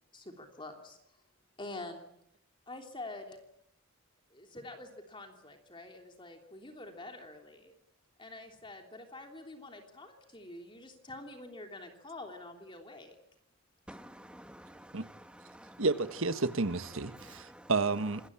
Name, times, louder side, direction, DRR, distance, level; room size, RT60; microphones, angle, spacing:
voice 1, 0.1-1.0 1.6-2.1 2.7-3.4 4.3-7.7 8.2-13.2 13.9-14.0, left 2 dB, 25° left, 4 dB, 3.2 m, -46 dB
voice 2, 13.9-15.2 15.5-15.8 17.1-17.7, equal, 5° right, 9 dB, 1.3 m, -51 dB
voice 3, 15.8-18.2, right 3 dB, 70° right, 11 dB, 1.5 m, -31 dB
27.5 x 20.5 x 8.7 m, 0.75 s
head